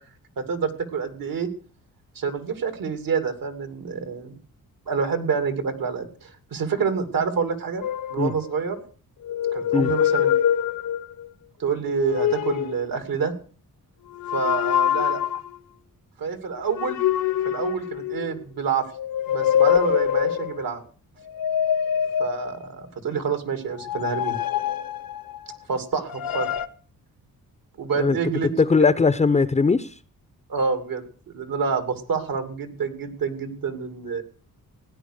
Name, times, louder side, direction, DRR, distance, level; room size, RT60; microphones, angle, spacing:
voice 1, 0.5-1.5 2.1-4.4 4.9-7.8 8.1-8.8 9.5-10.3 11.6-13.3 14.3-15.2 16.2-17.0 17.4-18.8 19.3-20.8 22.2-24.4 25.7-26.5 27.8-28.5 30.5-31.0 31.3-34.2, right 5 dB, 75° right, 2.7 m, -27 dB
sound 1, 7.8-8.7 9.2-11.3 11.9-12.8 14.1-15.6 16.7-18.4 18.9-20.7 21.3-22.8 23.7-25.6 26.1-26.7, left 10 dB, 75° left, 1.0 m, -24 dB
voice 2, 28.6-29.9, left 4 dB, 20° left, 0.6 m, -19 dB
16.5 x 10.0 x 6.5 m
cardioid pair, 90°, 35 cm